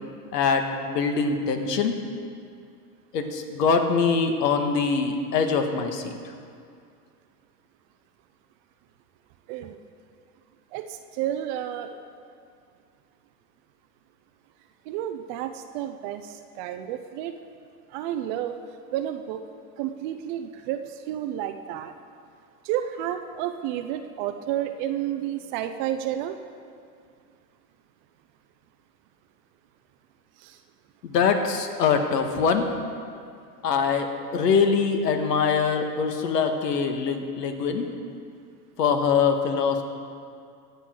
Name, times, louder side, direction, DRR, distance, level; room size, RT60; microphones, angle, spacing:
voice 1, 0.3-2.0 3.1-6.1 31.0-32.7 33.6-37.9 38.8-39.8, left 5 dB, 75° left, 5 dB, 1.7 m, -23 dB
voice 2, 10.7-12.0 14.9-17.3 17.9-18.6 18.9-19.4 19.8-21.9 22.6-26.4 30.4-30.6, right 11 dB, 30° right, 8 dB, 0.4 m, -31 dB
23.5 x 8.3 x 3.8 m, 2.3 s
hypercardioid pair, 120°, 49 cm